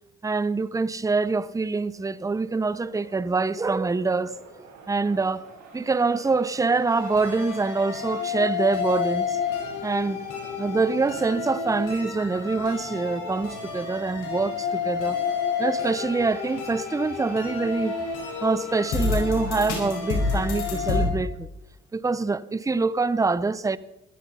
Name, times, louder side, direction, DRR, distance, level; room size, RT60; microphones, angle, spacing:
voice 1, 0.2-4.3 4.9-5.4 5.7-9.4 9.8-10.2 10.6-15.2 15.6-18.0 18.4-21.5 21.9-23.8, right 3 dB, 10° right, 0.5 m, -25 dB
sound 1, 1.9-20.2, right 4 dB, 75° right, 4.6 m, -48 dB
sound 2, 6.9-21.1, left 5 dB, 85° left, 4.9 m, -29 dB
15.0 x 12.5 x 5.5 m
cardioid pair, 90°, 30 cm